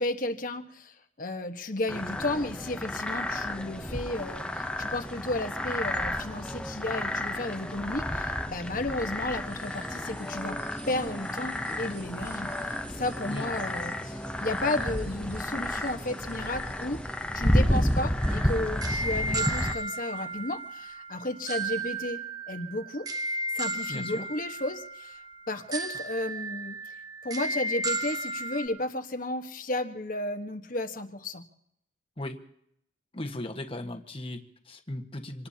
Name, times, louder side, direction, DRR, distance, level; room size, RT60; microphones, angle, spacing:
voice 1, 0.0-10.6 10.9-12.5 12.9-17.0 17.3-23.1 23.5-25.2 25.5-26.8 27.2-31.4, left 2 dB, 45° left, 6 dB, 1.3 m, -33 dB
sound 1, 1.9-19.7, left 1 dB, 5° left, 0.7 m, -31 dB
sound 2, 9.0-20.9, right 4 dB, 40° right, 7.5 m, -55 dB
sound 3, 18.2-28.7, right 2 dB, 20° right, 1.0 m, -34 dB
voice 2, 23.9-24.3 32.2-32.4 33.1-35.5, left 1 dB, 30° left, 4 dB, 1.4 m, -37 dB
26.5 x 19.0 x 2.9 m, 0.73 s
head